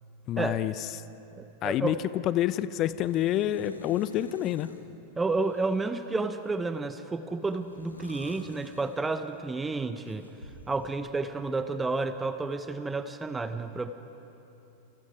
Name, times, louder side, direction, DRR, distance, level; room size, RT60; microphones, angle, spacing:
voice 1, 0.3-1.0 1.6-4.7, left 12 dB, 35° left, 16 dB, 0.7 m, -28 dB
voice 2, 1.4-1.9 5.2-10.3 10.7-13.9, right 3 dB, 10° right, 11 dB, 0.9 m, -31 dB
sound 1, 2.8-4.9 5.4-6.7 7.4-9.5 10.0-10.9, left 1 dB, 85° left, 2.1 m, -51 dB
29.0 x 28.5 x 4.9 m, 3.0 s
figure-of-eight pair, 90°, 0 cm